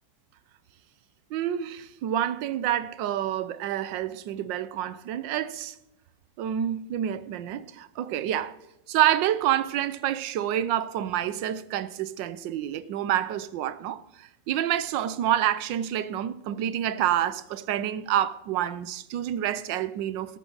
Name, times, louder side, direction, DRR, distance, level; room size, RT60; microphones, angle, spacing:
voice 1, 1.3-5.7 6.4-8.5 8.9-20.4, right 11 dB, 85° right, 1.4 m, -28 dB
14.0 x 12.5 x 3.9 m
omnidirectional pair, 1.9 m